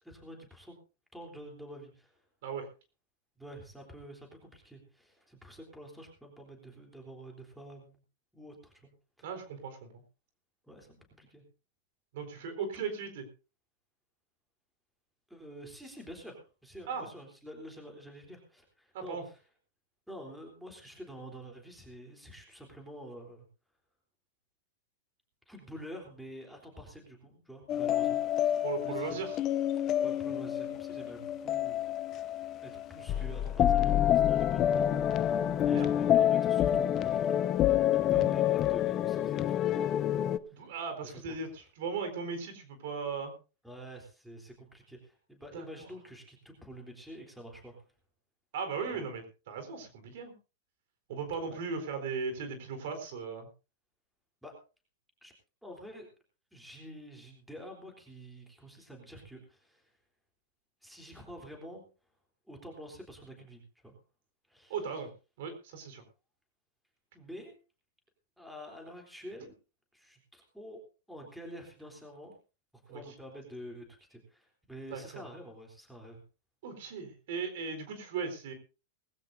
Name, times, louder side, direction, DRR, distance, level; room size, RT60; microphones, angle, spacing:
voice 1, 0.0-0.8 1.1-2.1 3.4-8.0 8.3-8.7 9.2-9.3 10.7-11.4 12.6-12.8 15.3-19.4 20.1-23.5 25.5-29.3 30.0-31.9 32.6-35.3 35.6-37.7 38.0-39.8 40.5-40.7 41.0-41.4 43.6-47.8 48.9-49.1 51.4-51.6 54.4-54.5 55.2-55.3 55.6-56.1 56.5-59.9 60.8-61.8 62.5-63.9 64.5-64.7 67.1-67.6 68.4-69.5 69.9-70.8 71.1-72.3 72.9-76.2, equal, ahead, 2 dB, 3.6 m, -48 dB
voice 2, 9.2-9.9 12.1-13.2 16.9-17.1 18.9-19.2 28.6-29.4 35.6-35.9 38.1-38.3 40.5-43.3 45.5-45.9 48.5-50.3 51.1-53.5 64.7-65.1 65.4-66.0 72.9-73.0 74.9-75.2 76.6-78.5, right 5 dB, 60° right, 8 dB, 4.2 m, -37 dB
sound 1, 27.7-40.4, left 11 dB, 25° left, 0.6 m, -28 dB
19.5 x 16.0 x 2.7 m, 0.32 s
supercardioid pair, 150°, 0 cm